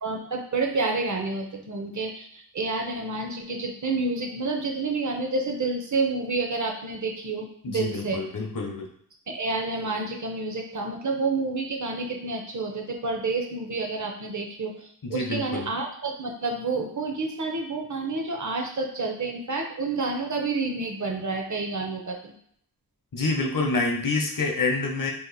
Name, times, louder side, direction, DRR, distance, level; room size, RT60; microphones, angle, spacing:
voice 1, 0.0-8.2 9.3-22.3, right 3 dB, 50° right, 2 dB, 0.7 m, -29 dB
voice 2, 7.6-8.9 15.0-15.7 23.1-25.1, left 3 dB, 55° left, 2 dB, 0.7 m, -27 dB
2.9 x 2.5 x 3.9 m, 0.65 s
wide cardioid pair, 70°, 39 cm